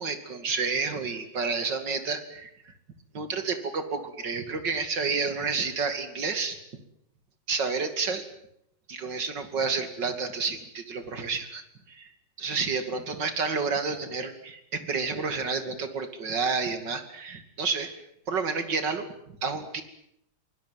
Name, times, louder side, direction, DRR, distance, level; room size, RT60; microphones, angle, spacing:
voice 1, 0.0-2.5 3.1-6.6 7.5-8.2 8.9-11.6 11.9-12.1 12.4-17.9 18.3-19.0 19.4-19.8, right 4 dB, 70° right, 9 dB, 3.2 m, -30 dB
24.0 x 20.5 x 9.3 m, 0.74 s
omnidirectional pair, 2.0 m